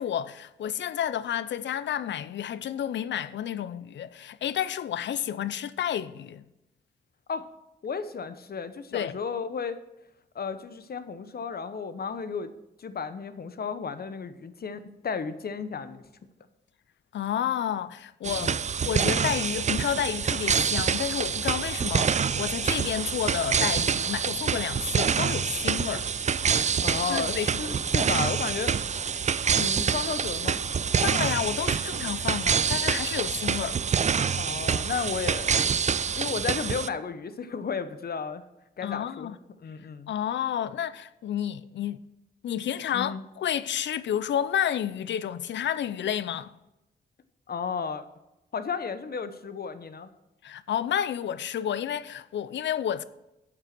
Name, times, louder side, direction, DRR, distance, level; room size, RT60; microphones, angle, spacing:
voice 1, 0.0-6.4 8.9-9.1 17.1-18.5 18.8-26.1 27.1-27.5 31.0-33.8 38.8-39.3 40.1-42.0 42.4-46.5 50.4-53.0, left 10 dB, 80° left, 0.6 m, -30 dB
voice 2, 7.8-9.8 10.3-12.5 12.8-16.0 18.3-18.6 26.8-28.8 29.5-30.6 34.3-35.6 36.1-38.4 38.8-40.1 42.9-43.2 47.5-48.0 48.5-50.1, left 5 dB, 55° left, 1.0 m, -33 dB
sound 1, 18.2-36.9, right 6 dB, 40° right, 0.5 m, -26 dB
8.9 x 8.0 x 6.0 m
cardioid pair, 70°, 19 cm